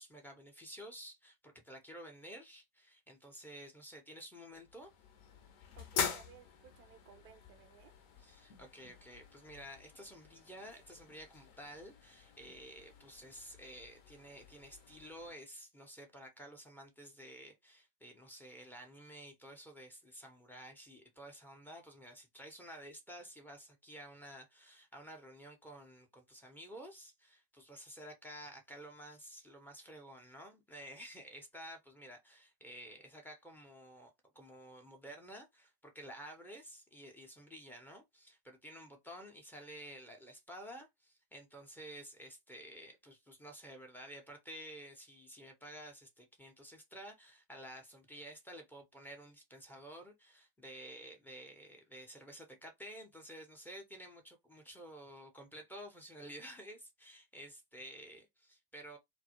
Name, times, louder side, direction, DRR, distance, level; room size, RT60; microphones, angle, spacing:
voice 1, 0.0-4.9 8.2-59.0, equal, 5° left, 0.6 m, -52 dB
sound 1, 4.5-15.3, left 7 dB, 50° left, 0.7 m, -45 dB
voice 2, 5.7-7.9, right 7 dB, 40° right, 0.5 m, -59 dB
2.3 x 2.1 x 2.8 m
hypercardioid pair, 95°, 32 cm